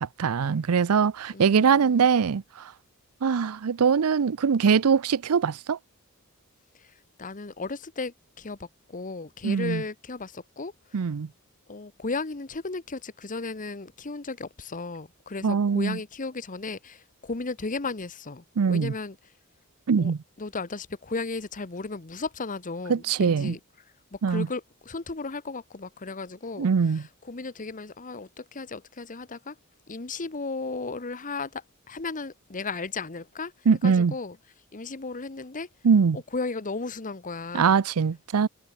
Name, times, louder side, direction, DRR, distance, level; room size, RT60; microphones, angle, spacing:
voice 1, 0.0-2.7 3.2-5.8 9.4-9.8 10.9-11.3 15.4-16.0 18.6-18.9 19.9-20.2 22.9-23.5 24.2-24.5 26.6-27.0 33.7-34.1 35.8-36.2 37.5-38.5, right 6 dB, 85° right, 0.5 m, -22 dB
voice 2, 1.3-2.1 6.8-10.7 11.7-19.2 20.0-20.1 20.4-23.6 24.1-26.7 26.9-29.6 29.9-33.5 33.8-34.4 34.7-35.7 36.1-37.8, left 3 dB, 35° left, 1.1 m, -35 dB
head